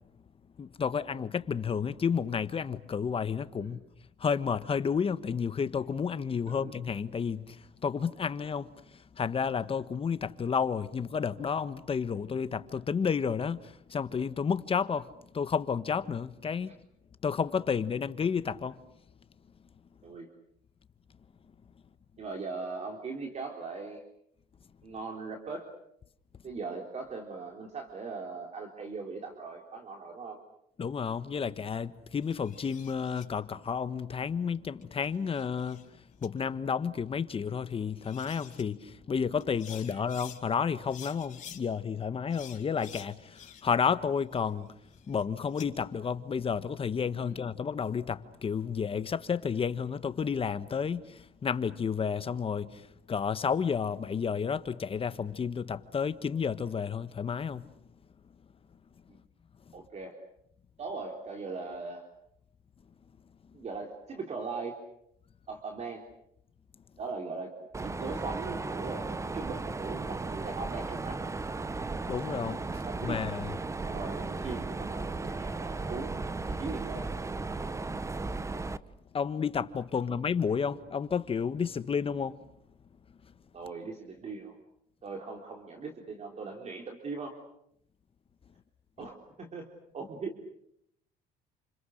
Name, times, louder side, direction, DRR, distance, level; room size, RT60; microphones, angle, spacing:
voice 1, 0.6-3.8 4.2-15.1 15.3-16.8 17.2-18.8 30.8-35.9 36.2-44.7 45.1-57.7 72.1-73.5 79.1-82.4, left 6 dB, 35° left, 1.4 m, -31 dB
voice 2, 22.2-24.0 24.8-25.7 26.4-30.4 39.7-40.0 47.2-47.4 59.1-59.2 59.7-60.2 60.8-62.1 63.5-64.7 65.5-66.0 67.0-67.5 67.8-69.1 69.3-71.3 72.8-73.2 73.8-76.1 76.4-77.9 80.1-80.2 83.5-84.6 85.0-87.4 89.0-89.7 89.9-90.3, right 4 dB, 40° right, 3.8 m, -40 dB
sound 1, 32.2-33.3 34.8-35.9 36.2-36.3 37.7-37.8 38.0-38.6 39.4-40.4 40.9-41.6 42.3-43.8 44.2-45.7, left 9 dB, 50° left, 4.5 m, -50 dB
Mechanisms, 67.7-78.8, right 3 dB, 15° right, 1.0 m, -35 dB
30.0 x 28.0 x 6.6 m
cardioid pair, 110°, 17 cm